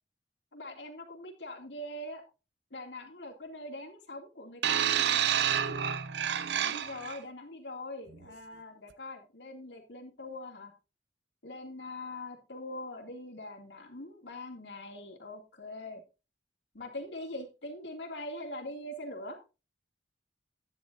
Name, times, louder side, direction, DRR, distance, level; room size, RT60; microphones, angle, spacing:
voice 1, 0.5-2.2 2.7-5.2 6.6-10.7 11.4-16.0 16.7-19.4, left 1 dB, 85° left, 3 dB, 2.6 m, -42 dB
sound 1, 4.6-7.2 8.1-8.3, right 9 dB, 70° right, 0.6 m, -29 dB
11.0 x 9.8 x 2.7 m, 0.30 s
head